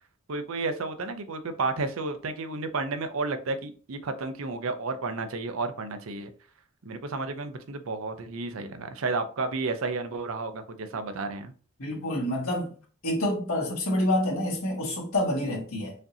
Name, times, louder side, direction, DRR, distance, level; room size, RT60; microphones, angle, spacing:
voice 1, 0.3-6.3 6.8-11.5, right 3 dB, 70° right, 0.6 m, -32 dB
voice 2, 11.8-12.7 13.0-15.9, left 1 dB, 80° left, 1.7 m, -27 dB
5.1 x 2.7 x 2.6 m
head